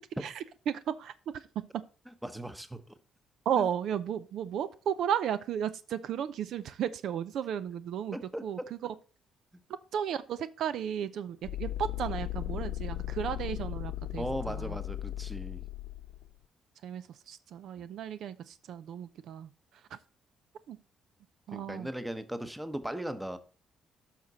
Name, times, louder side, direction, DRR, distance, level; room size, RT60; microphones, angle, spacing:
voice 1, 0.2-1.5 1.7-1.8 3.5-8.2 8.4-8.9 9.9-14.8 16.8-19.5 19.9-20.0 20.7-20.8 21.5-21.9, right 9 dB, 75° right, 0.5 m, -34 dB
voice 2, 2.2-2.8 3.6-3.7 8.1-8.4 14.2-15.7 21.5-23.4, right 1 dB, 5° right, 0.9 m, -37 dB
sound 1, 11.4-16.3, left 13 dB, 90° left, 0.3 m, -37 dB
10.5 x 5.9 x 4.0 m
cardioid pair, 90°, 0 cm